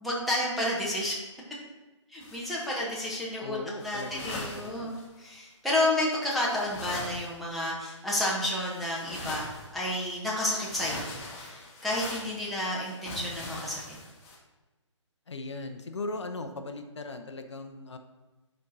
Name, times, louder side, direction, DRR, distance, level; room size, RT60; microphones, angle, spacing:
voice 1, 0.0-1.2 2.1-3.6 3.8-14.0, left 1 dB, ahead, -6 dB, 0.9 m, -31 dB
sound 1, 2.2-2.9 3.8-5.4 6.0-6.1 6.3-8.0 8.6-10.0 10.3-14.4, left 2 dB, 20° left, 1.4 m, -41 dB
voice 2, 3.4-5.0 15.3-18.0, left 2 dB, 65° left, 7 dB, 0.6 m, -38 dB
10.5 x 4.4 x 2.7 m, 1.2 s
figure-of-eight pair, 135°, 16 cm